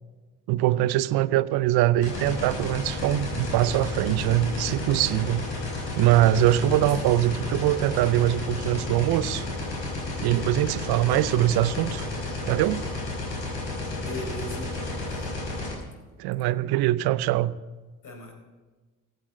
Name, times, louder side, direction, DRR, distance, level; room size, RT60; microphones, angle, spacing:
voice 1, 0.5-5.5 6.0-9.5 10.2-12.1 12.5-12.9 16.2-17.6, right 13 dB, 75° right, 17 dB, 0.7 m, -23 dB
sound 1, 2.0-15.7, left 2 dB, 70° left, 5.3 m, -32 dB
voice 2, 6.7-7.1 13.9-15.3 18.0-18.3, left 2 dB, 55° left, 4 dB, 4.4 m, -38 dB
15.5 x 8.6 x 7.8 m, 1.3 s
hypercardioid pair, 55°, 39 cm